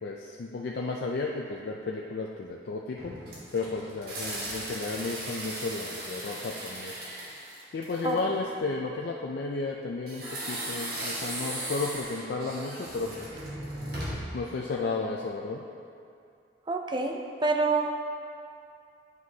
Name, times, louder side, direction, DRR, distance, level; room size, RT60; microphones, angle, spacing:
voice 1, 0.0-3.2 3.5-7.1 7.7-13.3 14.3-15.6, left 3 dB, 60° left, -1 dB, 0.4 m, -33 dB
sound 1, 3.0-8.3 10.1-14.4, right 1 dB, 55° right, 1.4 m, -37 dB
voice 2, 16.7-17.9, right 3 dB, 25° right, 3 dB, 0.5 m, -27 dB
9.3 x 5.1 x 2.7 m, 2.5 s
head